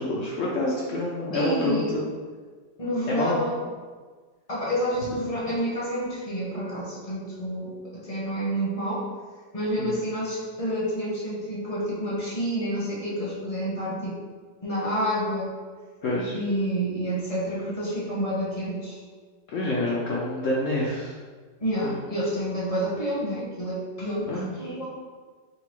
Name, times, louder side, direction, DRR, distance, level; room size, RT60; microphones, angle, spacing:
voice 1, 0.0-2.0 3.1-3.4 9.8-10.0 16.0-16.4 19.5-21.1 21.8-21.9 24.3-24.8, left 1 dB, 65° left, -4 dB, 0.8 m, -27 dB
voice 2, 1.3-1.9 2.8-3.5 4.5-9.1 9.5-14.2 14.6-15.5 16.3-19.0 21.6-24.9, equal, 30° left, -7 dB, 0.8 m, -29 dB
3.9 x 2.3 x 4.3 m, 1.5 s
omnidirectional pair, 1.8 m